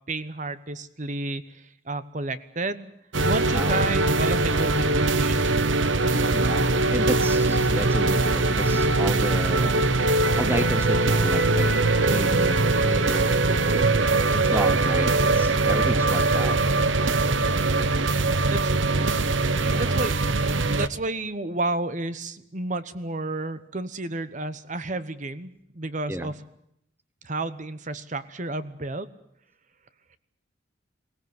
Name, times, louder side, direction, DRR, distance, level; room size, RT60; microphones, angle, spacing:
voice 1, 0.1-2.9 3.2-5.6 12.8-13.1 18.5-19.0 19.8-20.1 20.7-26.4 27.2-29.1, right 2 dB, 40° right, 13 dB, 1.0 m, -31 dB
sound 1, 3.1-20.9, right 3 dB, 75° right, 1.0 m, -22 dB
voice 2, 6.3-13.9 14.3-16.6 19.6-19.9 26.1-26.3, right 1 dB, 10° right, 12 dB, 0.9 m, -32 dB
23.0 x 18.0 x 9.5 m, 0.75 s
head